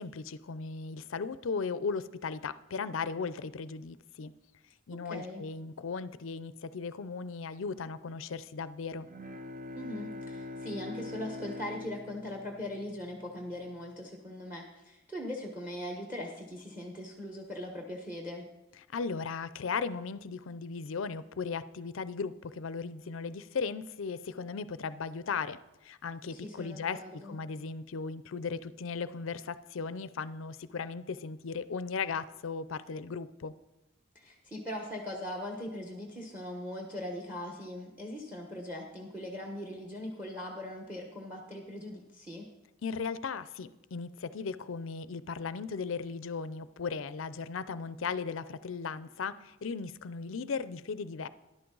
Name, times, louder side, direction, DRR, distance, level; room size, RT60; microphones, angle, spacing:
voice 1, 0.0-4.3 4.9-9.1 18.9-33.5 42.8-51.3, left 5 dB, 70° left, 15 dB, 0.5 m, -37 dB
voice 2, 4.9-5.4 9.7-18.5 26.3-27.4 34.1-42.5, left 1 dB, 10° right, 2 dB, 1.2 m, -40 dB
Bowed string instrument, 9.0-13.5, left 2 dB, 40° right, 0.6 m, -43 dB
13.5 x 11.0 x 3.9 m, 0.95 s
head